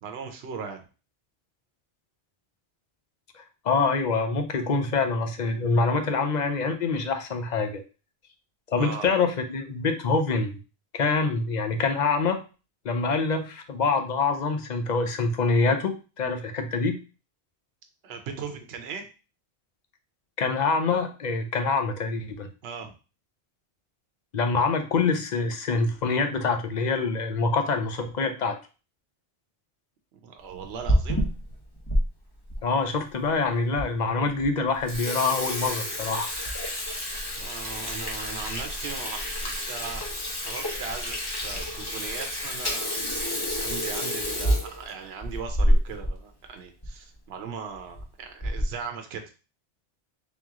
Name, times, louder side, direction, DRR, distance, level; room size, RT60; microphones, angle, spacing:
voice 1, 0.0-0.8 8.8-9.1 18.0-19.1 22.6-22.9 30.2-31.2 37.4-43.1 43.6-49.2, right 6 dB, 75° right, 5 dB, 0.9 m, -38 dB
voice 2, 3.3-7.8 8.7-10.6 10.9-12.4 12.8-17.0 20.4-22.5 24.3-28.6 32.6-36.3, left 4 dB, 50° left, 7 dB, 0.6 m, -25 dB
Water tap faucet / Sink (filling or washing), 30.6-32.0 32.5-32.6 33.3-33.4 33.8-33.9 34.2-34.4 34.7-46.1 46.4-46.5 46.8-46.9 47.7-48.0 48.4-48.8, equal, 25° left, 0.9 m, -28 dB
3.6 x 3.0 x 3.6 m, 0.33 s
omnidirectional pair, 1.1 m